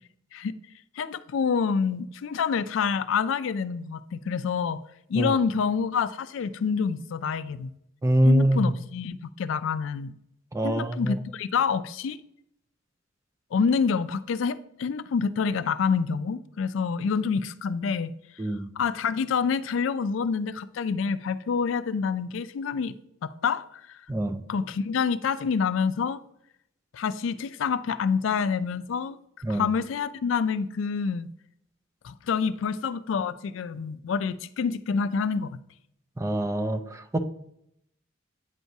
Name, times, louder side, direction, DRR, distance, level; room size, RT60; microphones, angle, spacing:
voice 1, 1.0-4.8 5.1-7.7 8.2-10.1 10.6-12.2 13.5-18.1 18.8-22.9 23.2-24.0 24.5-26.2 26.9-29.2 29.5-31.3 32.0-35.5, left 6 dB, 75° left, 0.3 m, -27 dB
voice 2, 8.0-8.7 10.5-11.2 18.4-18.7 24.1-24.4 29.4-29.7 36.2-37.2, right 1 dB, 15° right, 0.4 m, -24 dB
9.0 x 4.6 x 2.7 m
head